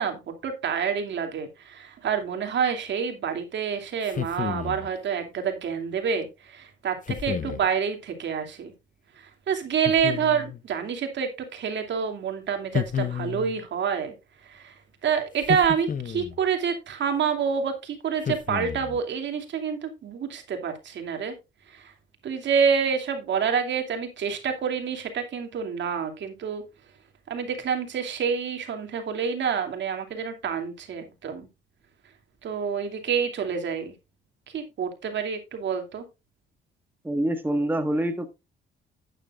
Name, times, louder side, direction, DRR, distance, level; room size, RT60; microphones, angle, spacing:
voice 1, 0.0-8.7 9.2-14.1 14.5-14.7 15.0-21.3 21.7-21.9 22.2-26.6 27.3-31.5 32.4-33.9 34.5-36.0, right 7 dB, 65° right, 2.7 m, -28 dB
sound 1, 4.0-4.9 7.1-7.7 9.9-10.6 12.7-13.6 15.4-16.4 18.2-19.0, left 8 dB, 40° left, 0.8 m, -31 dB
voice 2, 37.0-38.3, right 1 dB, 10° right, 1.5 m, -25 dB
12.0 x 8.9 x 2.4 m
cardioid pair, 90°, 20 cm